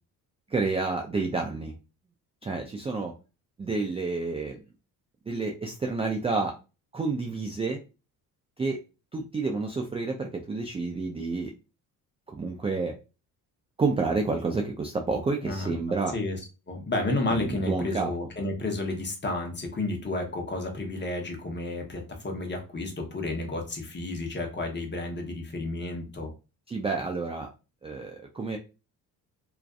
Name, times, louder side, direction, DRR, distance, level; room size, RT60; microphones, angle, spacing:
voice 1, 0.5-1.7 2.4-3.1 3.6-4.6 5.3-6.5 6.9-7.8 8.6-8.8 9.1-11.5 12.3-12.9 13.8-16.1 17.3-18.1 26.7-27.5 27.8-28.6, right 3 dB, 15° right, 2 dB, 0.3 m, -29 dB
voice 2, 15.4-15.8 16.1-16.4 16.7-26.3, left 2 dB, 25° left, 2 dB, 0.8 m, -31 dB
2.4 x 2.3 x 2.3 m, 0.31 s
supercardioid pair, 75°, 40 cm